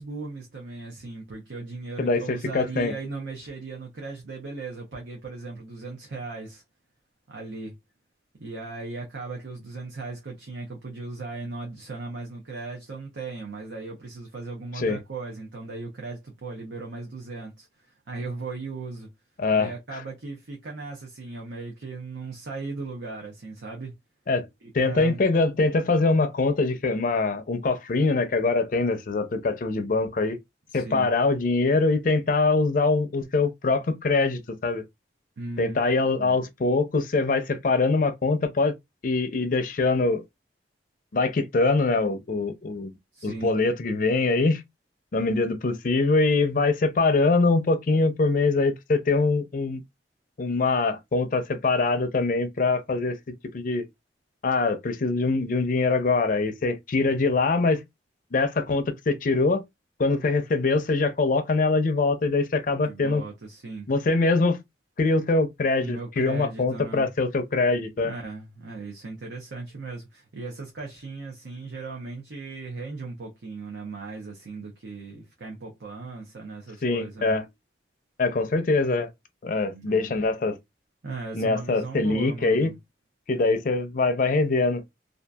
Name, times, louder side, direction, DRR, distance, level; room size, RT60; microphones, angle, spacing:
voice 1, 0.0-6.6 7.3-7.8 8.4-19.1 19.5-23.9 24.6-25.2 30.7-31.1 35.4-35.8 36.2-36.5 43.1-43.5 62.8-63.9 65.8-67.1 68.0-77.4 79.7-80.1 81.0-82.8, right 3 dB, 85° right, 0.7 m, -37 dB
voice 2, 2.0-2.9 14.8-15.0 19.4-19.7 24.3-24.5 24.7-30.4 30.7-34.8 35.6-38.7 39.0-40.2 41.1-42.9 43.2-44.6 45.1-49.8 50.4-53.2 53.5-53.8 54.4-57.8 58.3-59.6 60.0-63.2 63.9-64.6 65.0-68.1 76.8-77.4 78.2-79.1 79.4-80.6 81.3-82.7 83.3-84.8, left 3 dB, 50° left, 0.5 m, -23 dB
2.7 x 2.4 x 2.2 m
head